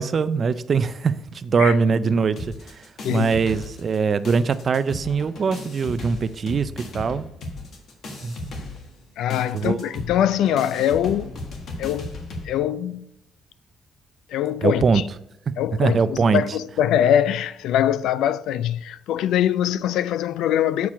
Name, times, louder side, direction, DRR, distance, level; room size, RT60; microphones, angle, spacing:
voice 1, 0.0-7.3 8.2-8.5 9.5-9.9 14.6-15.0 15.8-16.4, right 5 dB, 35° right, 0.4 m, -22 dB
sound 1, 2.4-4.0 4.2-12.5, left 1 dB, 55° left, 1.4 m, -36 dB
voice 2, 9.2-11.3 11.8-12.2 12.4-13.1 14.3-15.0 15.6-20.9, left 10 dB, 90° left, 0.3 m, -23 dB
7.3 x 4.6 x 5.0 m
cardioid pair, 145°, 0 cm